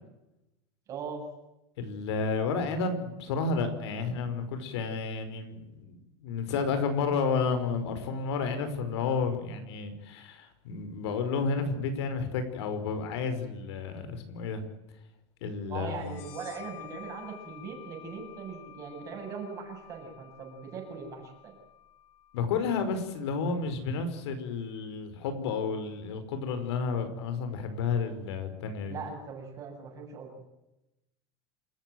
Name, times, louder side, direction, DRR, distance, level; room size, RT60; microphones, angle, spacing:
voice 1, 0.9-1.2 15.7-21.5 28.9-30.5, right 5 dB, 25° right, 1 dB, 7.9 m, -40 dB
voice 2, 1.8-14.6 15.4-16.2 22.3-28.9, left 5 dB, 75° left, 9 dB, 5.2 m, -31 dB
sound 1, 16.0-23.3, left 12 dB, 40° left, 3.0 m, -51 dB
28.0 x 14.5 x 9.4 m, 0.94 s
supercardioid pair, 180°, 14 cm